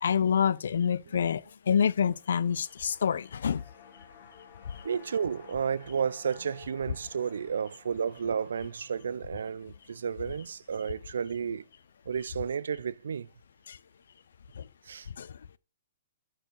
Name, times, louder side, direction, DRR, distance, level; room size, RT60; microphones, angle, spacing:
voice 1, 0.0-3.6 4.7-4.8 13.7-13.8 14.6-14.7 15.2-15.4, left 7 dB, 65° left, 0.4 m, -27 dB
sound 1, 1.7-12.1 12.4-12.5, left 7 dB, 30° left, 1.7 m, -56 dB
voice 2, 4.8-11.6 12.1-13.3 14.8-15.1, right 7 dB, 85° right, 0.4 m, -32 dB
12.0 x 4.6 x 4.6 m
hypercardioid pair, 180°, 0 cm